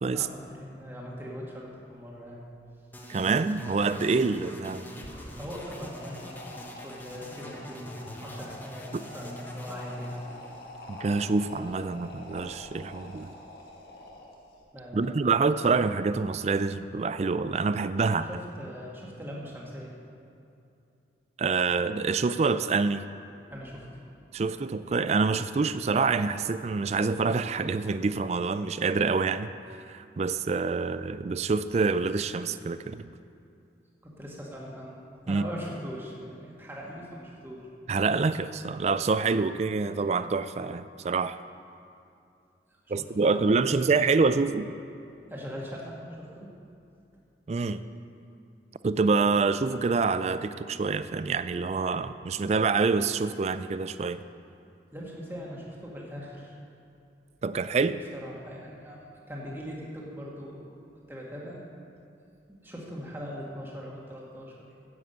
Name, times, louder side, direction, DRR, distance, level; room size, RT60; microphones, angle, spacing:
voice 1, 0.1-2.4 5.4-6.4 6.8-10.2 14.7-15.3 18.3-19.9 23.5-23.9 30.8-30.9 34.0-37.7 42.8-42.9 43.2-43.7 45.3-46.5 54.9-56.5 58.1-61.6 62.5-64.7, equal, 15° right, -4 dB, 1.9 m, -41 dB
sound 1, 2.9-11.0, equal, 10° left, 1.0 m, -45 dB
voice 2, 3.1-4.9 10.9-13.3 14.9-18.3 21.4-23.0 24.3-29.5 29.9-33.1 35.3-35.4 37.9-41.4 42.9-44.7 47.5-47.8 48.8-54.2 57.4-58.0, right 4 dB, 40° right, 13 dB, 0.3 m, -26 dB
sound 2, 4.9-14.6, left 1 dB, 60° left, 1.6 m, -46 dB
9.8 x 7.7 x 7.9 m, 2.6 s
head